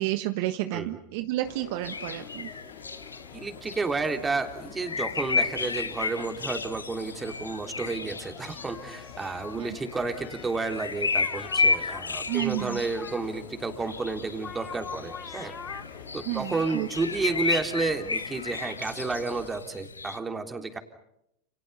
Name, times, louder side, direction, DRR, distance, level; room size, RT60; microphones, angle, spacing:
voice 1, 0.0-2.5 9.5-9.8 12.3-12.8 16.3-16.9, right 16 dB, 55° right, 9 dB, 1.4 m, -30 dB
sound 1, 1.4-19.6, left 8 dB, 55° left, 5.0 m, -48 dB
sound 2, 1.8-20.2, left 4 dB, 90° left, 1.3 m, -33 dB
voice 2, 3.3-15.5 16.1-20.8, right 3 dB, 15° right, 5 dB, 3.4 m, -31 dB
sound 3, 7.5-7.6 8.2-10.5 11.2-12.0 12.3-13.5 14.3-15.8, left 6 dB, 25° left, 1.5 m, -44 dB
30.0 x 29.0 x 5.6 m, 0.79 s
hypercardioid pair, 90°, 0 cm